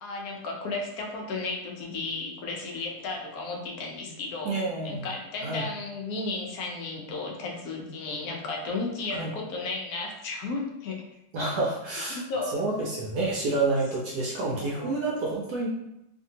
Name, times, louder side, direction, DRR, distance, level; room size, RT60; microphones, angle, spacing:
voice 1, 0.0-4.6 4.8-11.0 12.1-12.6 14.4-14.9, left 3 dB, 70° left, 0 dB, 0.9 m, -34 dB
voice 2, 4.4-5.1 5.4-5.6 9.1-9.3 11.3-12.2 12.5-15.7, right 2 dB, 70° right, -3 dB, 0.9 m, -28 dB
2.8 x 2.6 x 2.7 m, 0.84 s
omnidirectional pair, 2.0 m